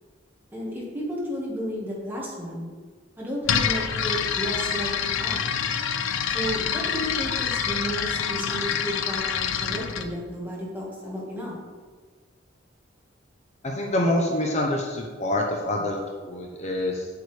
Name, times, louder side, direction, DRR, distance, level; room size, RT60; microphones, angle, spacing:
voice 1, 0.5-2.7 3.2-4.9 5.2-5.4 6.3-11.5, equal, 10° right, -5 dB, 1.7 m, -33 dB
sound 1, 3.4-10.1, left 7 dB, 80° left, 0.5 m, -26 dB
voice 2, 13.6-17.1, left 1 dB, 35° left, 0 dB, 0.7 m, -26 dB
8.1 x 6.7 x 3.3 m, 1.5 s
head